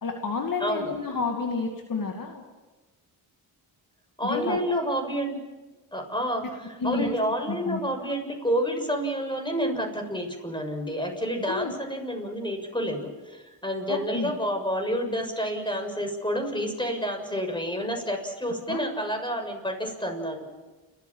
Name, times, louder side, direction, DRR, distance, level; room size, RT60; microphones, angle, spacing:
voice 1, 0.0-2.4 4.2-4.6 6.4-6.5 6.8-7.1 7.4-7.8 11.5-11.7 13.9-14.3 18.7-18.8, left 4 dB, 50° left, 3 dB, 2.4 m, -30 dB
voice 2, 0.6-0.9 4.2-5.4 5.9-20.5, equal, 10° left, 4 dB, 6.9 m, -29 dB
29.5 x 14.0 x 7.4 m, 1.2 s
supercardioid pair, 55°, 41 cm